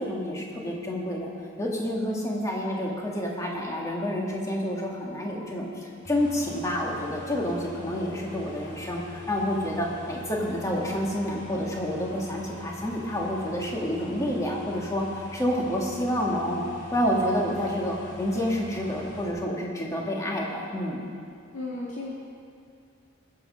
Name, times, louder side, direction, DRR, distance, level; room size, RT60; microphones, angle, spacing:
voice 1, 0.0-1.3 1.6-21.0, equal, 15° left, -2 dB, 1.8 m, -29 dB
sound 1, 6.0-19.3, left 1 dB, 60° left, 3.0 m, -44 dB
voice 2, 21.5-22.1, left 2 dB, 85° left, -6 dB, 1.7 m, -34 dB
20.0 x 7.6 x 5.6 m, 2.4 s
head